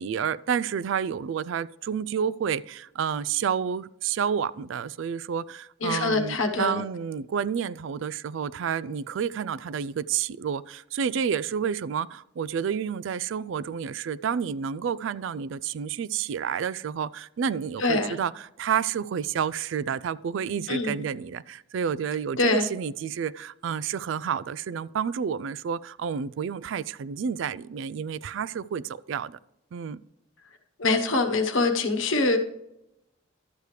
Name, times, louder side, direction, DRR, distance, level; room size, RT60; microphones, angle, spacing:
voice 1, 0.0-29.4 29.7-30.0, right 7 dB, 65° right, 0.3 m, -30 dB
voice 2, 5.8-6.8 17.8-18.1 20.7-21.0 22.4-22.6 30.8-32.4, left 3 dB, 70° left, 1.1 m, -24 dB
12.0 x 8.2 x 3.2 m
head